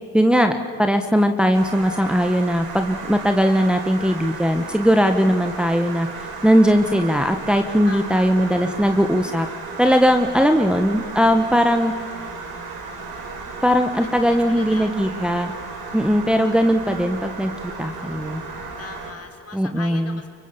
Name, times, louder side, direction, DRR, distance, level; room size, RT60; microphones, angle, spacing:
voice 1, 0.1-9.5 9.8-11.9 13.6-15.5 15.9-17.5 17.8-18.4 19.5-20.2, equal, ahead, 5 dB, 1.6 m, -19 dB
sound 1, 1.5-19.1, right 4 dB, 70° right, 4.8 m, -34 dB
voice 2, 7.8-8.3 11.4-11.8 14.0-15.6 15.9-16.3 18.8-20.3, left 4 dB, 40° left, 4 dB, 4.1 m, -41 dB
25.5 x 22.5 x 7.3 m, 2.3 s
supercardioid pair, 60°, 37 cm